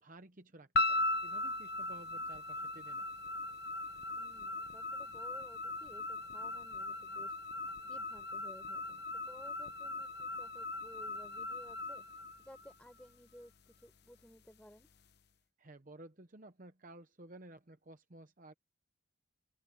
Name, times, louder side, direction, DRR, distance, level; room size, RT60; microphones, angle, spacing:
voice 1, 0.0-3.0 15.6-18.5, right 2 dB, 40° right, 0.9 m, -55 dB
sound 1, 0.8-13.1, left 2 dB, 50° left, 1.0 m, -38 dB
voice 2, 4.1-7.4 7.8-12.0 12.4-14.9, equal, 5° left, 5.7 m, -57 dB
open air
head